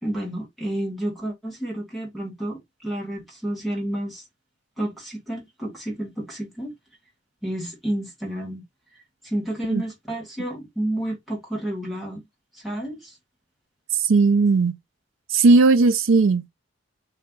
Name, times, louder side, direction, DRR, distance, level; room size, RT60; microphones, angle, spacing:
voice 1, 0.0-4.3 4.8-6.7 7.4-8.6 9.2-12.2 12.5-13.2, right 1 dB, ahead, 1.3 m, -30 dB
voice 2, 13.9-14.8 15.3-16.5, right 3 dB, 75° right, 0.5 m, -17 dB
4.2 x 2.2 x 3.7 m
head